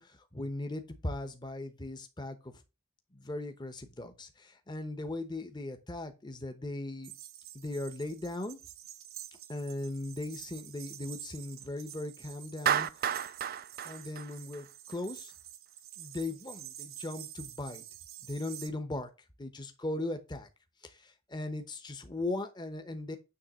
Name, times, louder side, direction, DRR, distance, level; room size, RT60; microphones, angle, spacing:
voice 1, 0.0-2.5 3.1-7.1 7.5-8.6 9.5-12.9 13.8-15.3 16.0-17.8 18.2-19.1 19.4-20.5 20.8-23.2, left 2 dB, 20° left, 0.9 m, -38 dB
sound 1, 7.0-18.7, right 12 dB, 65° right, 0.9 m, -49 dB
Clapping, 12.7-15.0, right 9 dB, 40° right, 0.4 m, -31 dB
9.7 x 3.4 x 6.3 m
head